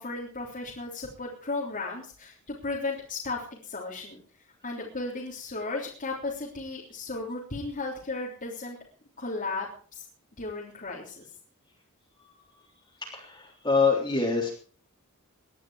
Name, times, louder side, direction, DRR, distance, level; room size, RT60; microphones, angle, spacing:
voice 1, 0.0-4.2 4.6-8.8 9.2-10.1 10.4-11.3, left 3 dB, 40° left, -4 dB, 3.5 m, -35 dB
voice 2, 13.0-14.5, left 4 dB, 20° left, -2 dB, 3.5 m, -25 dB
20.0 x 11.0 x 4.9 m, 0.42 s
head